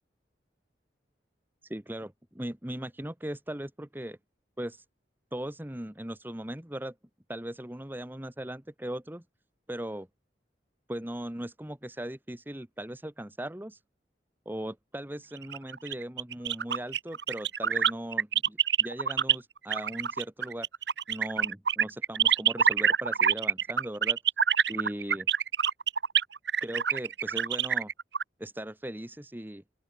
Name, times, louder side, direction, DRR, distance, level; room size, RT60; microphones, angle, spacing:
voice 1, 1.6-4.2 4.6-4.8 5.3-6.9 7.3-9.2 9.7-10.1 10.9-13.8 14.4-20.7 21.1-24.2 24.7-25.3 26.6-27.9 28.4-29.6, right 1 dB, 10° right, 1.2 m, -38 dB
sound 1, 15.4-19.4 19.7-28.2, right 8 dB, 80° right, 1.5 m, -26 dB
open air
head